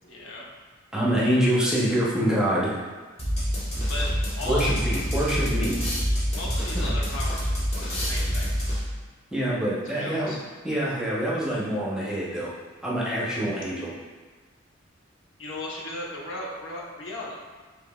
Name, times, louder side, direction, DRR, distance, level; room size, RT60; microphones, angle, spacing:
voice 1, 0.0-0.4 3.9-4.7 6.3-8.5 9.9-10.4 15.4-17.4, left 1 dB, 75° left, -4 dB, 0.9 m, -36 dB
voice 2, 0.9-2.8 4.4-5.8 6.7-6.9 9.3-10.4 10.6-12.5 12.8-13.9, equal, 5° right, -6 dB, 0.8 m, -25 dB
sound 1, 3.2-9.1, equal, 30° left, 1.2 m, -27 dB
6.0 x 3.4 x 2.3 m, 1.4 s
head